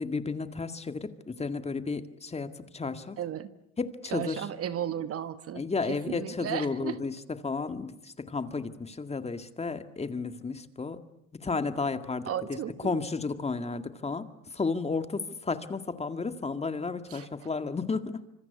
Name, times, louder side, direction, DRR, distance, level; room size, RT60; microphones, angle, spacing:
voice 1, 0.0-3.2 3.8-4.5 5.5-7.2 7.4-11.0 11.3-18.2, left 4 dB, 15° left, 9 dB, 1.9 m, -33 dB
voice 2, 3.2-3.5 4.1-5.7 6.1-7.0 12.3-13.0 17.1-17.5, right 10 dB, 30° right, 12 dB, 1.2 m, -35 dB
26.0 x 25.0 x 8.3 m, 0.79 s
hypercardioid pair, 105°, 43 cm